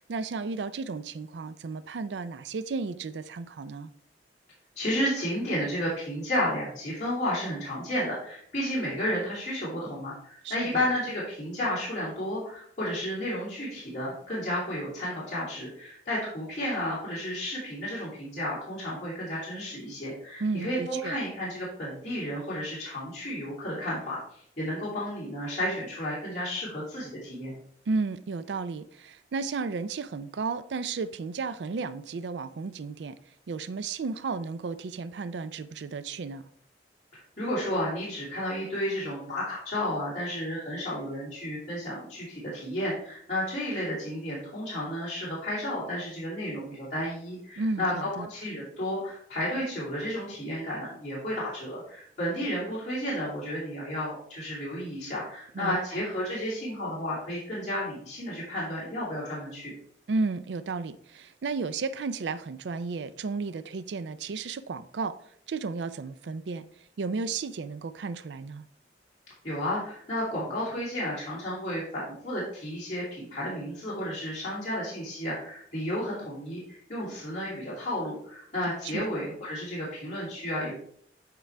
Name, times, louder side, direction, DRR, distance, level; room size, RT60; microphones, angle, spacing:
voice 1, 0.0-3.9 10.4-10.8 20.4-21.2 27.9-33.1 33.5-36.4 47.6-48.3 55.6-55.8 60.1-65.2 65.5-66.7 67.0-68.7 78.8-79.1, right 4 dB, 85° right, 14 dB, 0.4 m, -33 dB
voice 2, 4.8-27.6 37.1-59.7 69.4-80.7, equal, 40° left, -9 dB, 2.9 m, -32 dB
8.8 x 4.6 x 3.3 m, 0.64 s
head